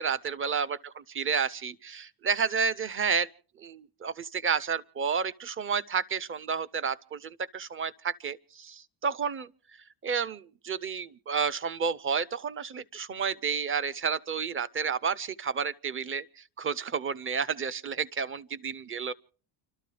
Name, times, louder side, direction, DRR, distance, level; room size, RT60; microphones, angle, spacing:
voice 1, 0.0-0.8 1.2-3.3 3.6-9.5 10.0-19.1, right 6 dB, 25° right, 0.6 m, -31 dB
29.5 x 12.5 x 3.4 m
cardioid pair, 100°, 48 cm